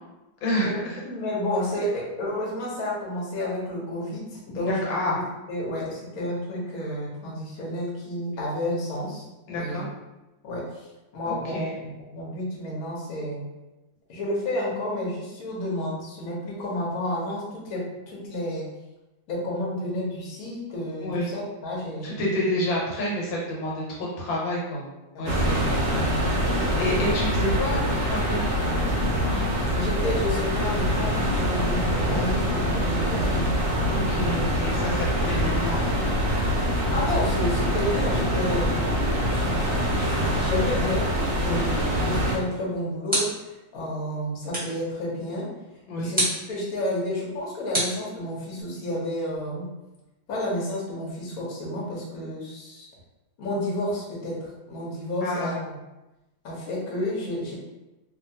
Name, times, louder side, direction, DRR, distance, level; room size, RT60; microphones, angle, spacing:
voice 1, 0.4-1.0 4.6-5.2 9.5-9.9 11.3-11.7 21.0-21.3 22.0-24.8 25.2-28.7 33.9-35.9 41.4-41.7 45.9-46.1 55.2-55.5, left 1 dB, 80° left, -4 dB, 1.6 m, -29 dB
voice 2, 1.0-5.0 5.5-9.9 10.4-13.4 14.1-18.7 19.3-22.4 23.9-24.0 25.1-25.5 29.3-33.5 36.9-45.5 46.0-49.7 50.3-52.9 53.4-55.8 56.4-57.6, left 1 dB, 55° left, -4 dB, 1.2 m, -31 dB
sound 1, 25.3-42.4, equal, 70° right, 0.7 m, -24 dB
sound 2, 43.0-43.6 44.5-44.9 46.1-46.5 47.7-48.6, right 1 dB, 5° right, 0.9 m, -28 dB
2.8 x 2.8 x 2.7 m, 1.0 s
omnidirectional pair, 2.1 m